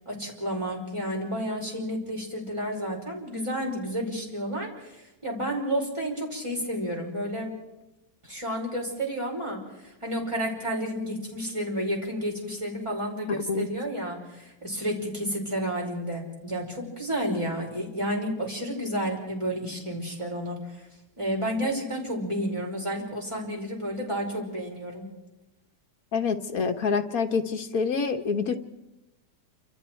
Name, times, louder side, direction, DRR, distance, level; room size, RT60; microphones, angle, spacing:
voice 1, 0.1-7.6 8.2-20.8 21.2-25.1, equal, 15° right, -1 dB, 5.2 m, -31 dB
voice 2, 26.1-28.6, left 5 dB, 60° left, 5 dB, 1.8 m, -26 dB
28.0 x 26.5 x 4.6 m, 0.97 s
omnidirectional pair, 1.8 m